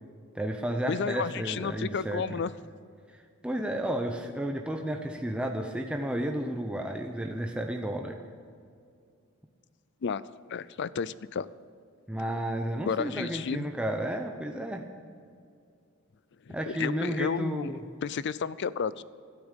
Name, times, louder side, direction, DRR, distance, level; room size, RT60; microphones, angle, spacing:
voice 1, 0.3-2.4 3.4-8.2 12.1-14.9 16.5-17.8, right 1 dB, 5° right, 3 dB, 0.7 m, -32 dB
voice 2, 0.9-2.5 10.0-10.2 10.5-11.5 12.9-13.7 16.5-17.7 18.0-19.0, left 6 dB, 55° left, 18 dB, 0.4 m, -32 dB
12.5 x 8.6 x 8.1 m, 2.3 s
head